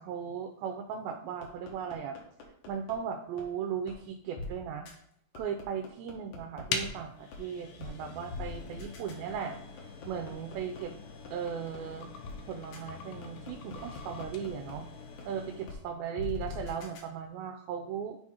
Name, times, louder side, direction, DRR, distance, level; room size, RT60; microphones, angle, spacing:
voice 1, 0.0-2.2 2.7-4.9 5.4-9.6 10.1-10.9 11.3-12.1 12.5-14.9 15.3-18.2, right 7 dB, 85° right, 5 dB, 2.3 m, -37 dB
sound 1, 1.4-2.9 3.4-3.5 3.9-4.0 4.4-4.5 4.9-5.0 5.3-6.9 7.3-7.4 7.8-7.9 8.3-10.8 11.3-11.4 11.7-11.8 12.2-12.4 12.7-12.8 13.2-14.7 15.2-15.3 15.7-15.8 16.2-17.0, left 5 dB, 65° left, 2.1 m, -42 dB
sound 2, 6.7-15.8, left 5 dB, 85° left, 2.4 m, -43 dB
8.5 x 2.8 x 4.7 m, 0.75 s
omnidirectional pair, 4.2 m